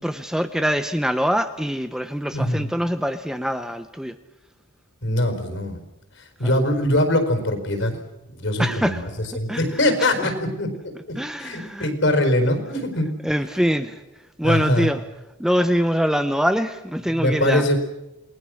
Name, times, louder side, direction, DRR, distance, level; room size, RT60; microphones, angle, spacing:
voice 1, 0.0-4.1 6.4-6.5 8.6-9.0 9.5-10.3 11.2-11.9 13.2-14.0 14.4-15.0 15.4-17.6, equal, 5° right, 10 dB, 0.7 m, -24 dB
voice 2, 2.3-2.7 5.0-5.8 6.4-7.9 8.3-9.1 9.3-10.7 11.1-13.1 14.4-14.9 17.1-17.8, left 1 dB, 65° left, 7 dB, 4.6 m, -22 dB
28.5 x 20.5 x 6.4 m, 0.96 s
head